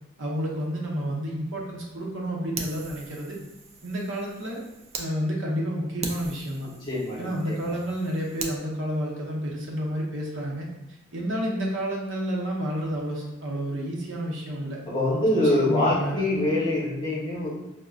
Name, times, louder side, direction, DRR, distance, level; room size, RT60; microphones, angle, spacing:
voice 1, 0.2-3.4 3.8-4.6 5.0-6.7 7.2-10.7 11.1-14.8 15.3-16.2, equal, 70° right, -2 dB, 0.7 m, -30 dB
Fire, 2.6-5.1 5.5-5.6 6.0-8.6, right 4 dB, 30° right, 0.3 m, -39 dB
voice 2, 6.9-7.7 14.9-17.5, left 1 dB, 20° left, -6 dB, 0.8 m, -25 dB
5.1 x 2.1 x 2.3 m, 0.92 s
head